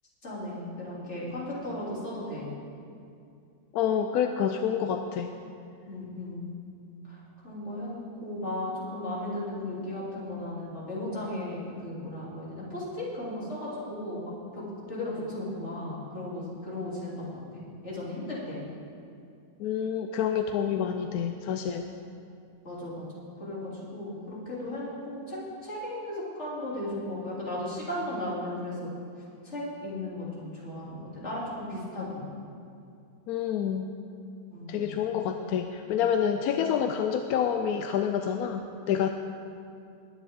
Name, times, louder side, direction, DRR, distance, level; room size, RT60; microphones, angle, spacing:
voice 1, 0.2-2.5 5.9-6.5 7.1-18.6 22.6-23.0 23.4-28.9 29.4-32.3 34.5-34.9, left 1 dB, 40° left, -7 dB, 3.5 m, -36 dB
voice 2, 3.7-5.3 19.6-21.9 33.3-33.9 34.7-39.1, left 8 dB, 70° left, 6 dB, 0.9 m, -28 dB
19.5 x 9.6 x 3.7 m, 2.5 s
omnidirectional pair, 1.9 m